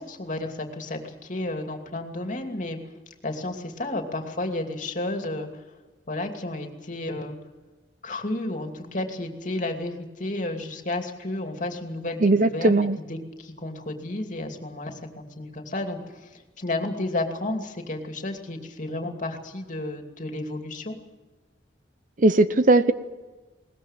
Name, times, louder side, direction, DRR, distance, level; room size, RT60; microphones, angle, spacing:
voice 1, 0.0-2.8 3.2-5.6 6.1-7.3 8.0-21.0, left 2 dB, 45° left, 4 dB, 2.6 m, -32 dB
voice 2, 12.2-13.0 22.2-22.9, right 2 dB, 45° right, 13 dB, 0.8 m, -18 dB
21.5 x 19.5 x 7.5 m, 1.2 s
head